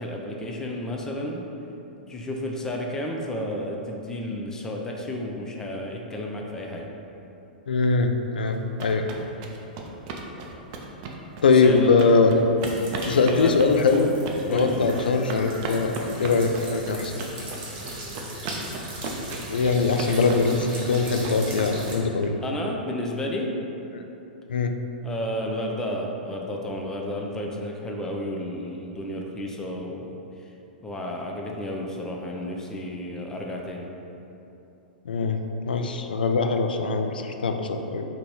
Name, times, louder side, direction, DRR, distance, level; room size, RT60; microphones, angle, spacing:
voice 1, 0.0-1.5 2.1-6.9 11.6-11.9 13.3-13.6 14.5-14.9 22.4-23.6 25.0-30.1 30.8-33.9, left 1 dB, 10° left, 0 dB, 0.4 m, -32 dB
voice 2, 7.7-9.1 11.4-12.4 13.0-14.1 14.5-17.1 19.5-22.3 24.5-24.7 35.1-35.4 35.7-38.1, left 4 dB, 75° left, 5 dB, 0.3 m, -22 dB
sound 1, 8.5-22.3, right 3 dB, 45° right, 0.5 m, -36 dB
sound 2, 12.6-21.9, right 1 dB, 30° right, 1.1 m, -38 dB
3.7 x 2.8 x 4.5 m, 2.9 s
figure-of-eight pair, 105°, 5 cm